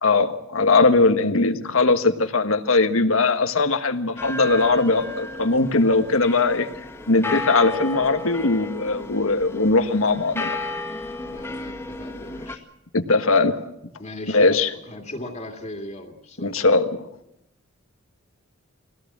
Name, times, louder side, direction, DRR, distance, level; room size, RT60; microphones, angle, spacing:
voice 1, 0.0-6.7 7.1-10.6 12.9-13.6 14.3-14.7 16.4-16.9, left 3 dB, 80° left, 8 dB, 1.6 m, -20 dB
sound 1, 4.2-12.6, left 2 dB, 10° left, 2.1 m, -33 dB
voice 2, 11.3-12.6 14.0-14.6 14.9-16.6, left 1 dB, 35° left, 1 dB, 2.4 m, -37 dB
22.5 x 17.5 x 7.5 m, 0.81 s
head